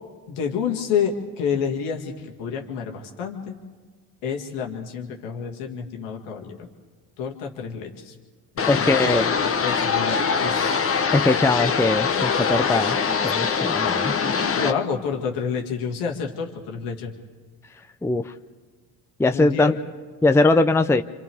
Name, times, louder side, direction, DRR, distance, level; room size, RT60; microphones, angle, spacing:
voice 1, 0.3-2.1 2.4-3.5 4.2-6.6 7.2-8.1 8.6-9.2 9.6-10.7 14.2-17.1 19.3-19.7, left 6 dB, 85° left, 1 dB, 2.1 m, -29 dB
sound 1, 8.6-14.7, left 6 dB, 30° left, 1.1 m, -23 dB
voice 2, 8.7-9.3 11.1-14.1 14.6-14.7 18.0-18.3 19.2-19.7 20.2-21.0, left 2 dB, 5° left, 8 dB, 0.6 m, -21 dB
29.0 x 25.5 x 3.6 m, 1.5 s
supercardioid pair, 65°, 45 cm